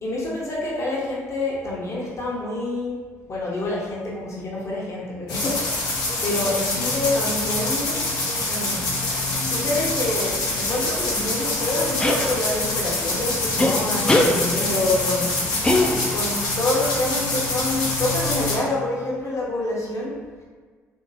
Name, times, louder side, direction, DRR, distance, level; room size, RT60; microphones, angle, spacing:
voice 1, 0.0-3.0 3.3-8.0 8.5-8.9 9.4-15.3 16.1-20.1, left 2 dB, 45° left, -5 dB, 1.0 m, -27 dB
sound 1, 5.3-18.6, left 2 dB, 70° left, 0.8 m, -25 dB
sound 2, 12.0-12.3 13.6-13.7 14.1-14.3 15.6-16.3, left 1 dB, 15° left, 0.4 m, -19 dB
2.9 x 2.8 x 2.7 m, 1.5 s
hypercardioid pair, 50°, 7 cm